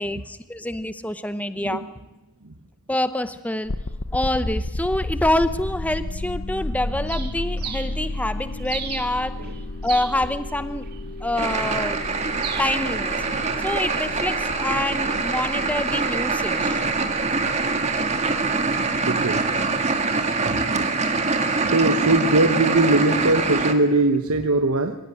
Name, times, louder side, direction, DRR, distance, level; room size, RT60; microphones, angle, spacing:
voice 1, 0.0-1.8 2.9-3.7 4.1-9.5 9.8-10.9 11.2-12.0 12.6-13.1 13.6-16.8, left 1 dB, 5° left, 12 dB, 0.8 m, -26 dB
sound 1, 3.7-20.6, left 2 dB, 60° left, 0.9 m, -33 dB
Bird, 7.1-13.8, right 8 dB, 45° right, 2.5 m, -38 dB
sound 2, 11.4-23.7, right 4 dB, 30° right, 1.9 m, -24 dB
voice 2, 18.9-19.6 20.4-20.9 21.6-25.0, right 2 dB, 70° right, 6 dB, 1.3 m, -21 dB
26.0 x 16.5 x 9.8 m, 1.1 s
head